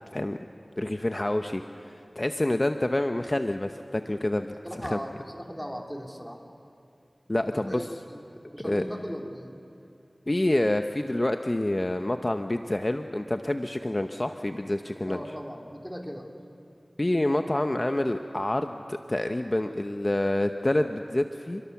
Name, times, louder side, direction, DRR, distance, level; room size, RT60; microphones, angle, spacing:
voice 1, 0.8-4.5 4.8-5.0 7.3-7.8 8.6-8.8 10.3-15.2 17.0-21.6, left 1 dB, 35° left, 7 dB, 0.9 m, -27 dB
voice 2, 4.6-6.4 7.5-7.9 8.1-8.2 8.5-9.5 15.0-16.3, equal, ahead, 1 dB, 3.4 m, -38 dB
29.0 x 22.0 x 7.2 m, 2.5 s
wide cardioid pair, 45°, 0 cm